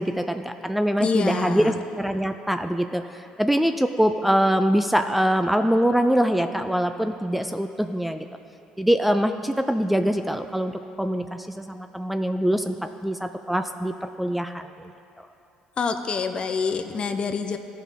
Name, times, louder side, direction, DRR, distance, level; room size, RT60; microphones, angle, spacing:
voice 1, 0.0-3.0 3.4-8.3 8.8-10.7 11.0-14.6, equal, 5° right, 8 dB, 0.3 m, -23 dB
voice 2, 1.0-1.8 15.8-17.6, left 5 dB, 40° left, 8 dB, 0.6 m, -26 dB
14.0 x 5.5 x 3.6 m, 2.7 s
supercardioid pair, 85°, 3 cm